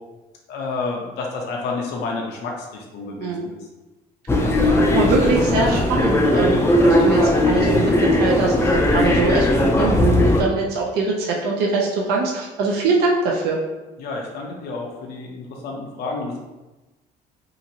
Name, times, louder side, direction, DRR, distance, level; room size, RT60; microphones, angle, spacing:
voice 1, 0.5-3.7 14.0-16.4, left 3 dB, 75° left, -1 dB, 0.6 m, -30 dB
sound 1, 4.3-10.4, left 1 dB, 15° left, 0.4 m, -18 dB
voice 2, 4.4-13.6, right 3 dB, 75° right, -1 dB, 0.5 m, -23 dB
2.9 x 2.5 x 2.8 m, 1.1 s
cardioid pair, 110°, 17 cm